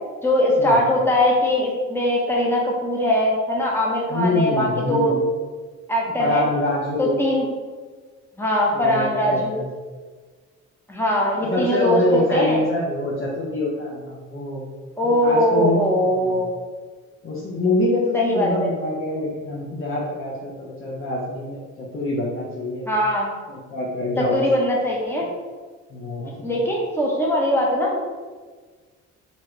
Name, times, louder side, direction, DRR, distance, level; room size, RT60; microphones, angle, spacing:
voice 1, 0.2-5.1 5.9-6.5 7.0-7.5 8.4-9.5 10.9-12.6 15.0-16.5 18.1-18.5 22.9-23.3 24.2-25.3 26.4-28.0, left 1 dB, 10° left, -3 dB, 0.8 m, -21 dB
voice 2, 4.1-5.2 6.2-7.2 8.7-9.7 11.5-14.7 15.0-15.8 16.1-16.4 17.2-22.9 23.5-24.4 25.9-26.5, left 2 dB, 45° left, -5 dB, 0.6 m, -25 dB
2.7 x 2.4 x 3.0 m, 1.4 s
cardioid pair, 90°, 30 cm